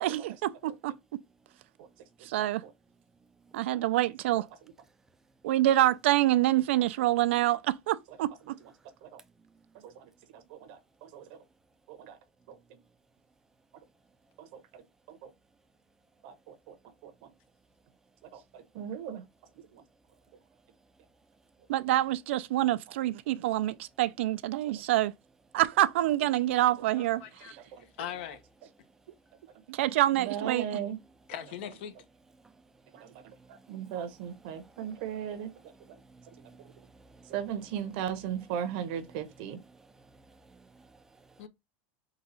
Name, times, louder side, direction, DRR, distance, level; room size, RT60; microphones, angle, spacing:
voice 1, 0.0-0.9 2.3-2.6 3.5-4.5 5.4-8.5 21.7-25.1 25.5-27.2 29.7-30.7, right 15 dB, 85° right, 0.4 m, -26 dB
voice 2, 10.3-11.2 11.9-12.2 12.5-12.6 14.4-14.8 15.1-15.3 16.2-16.7 17.0-17.1 18.3-19.2 19.7-19.8 30.2-31.0 33.0-33.1 33.7-35.5 37.3-39.6, right 9 dB, 60° right, 0.8 m, -37 dB
voice 3, 27.0-27.5 28.0-28.4 31.3-31.9 41.4-41.5, left 10 dB, 70° left, 0.8 m, -40 dB
voice 4, 33.4-34.5 35.3-37.4 39.1-41.5, right 3 dB, 5° right, 0.4 m, -58 dB
3.9 x 2.3 x 4.2 m
supercardioid pair, 160°, 6 cm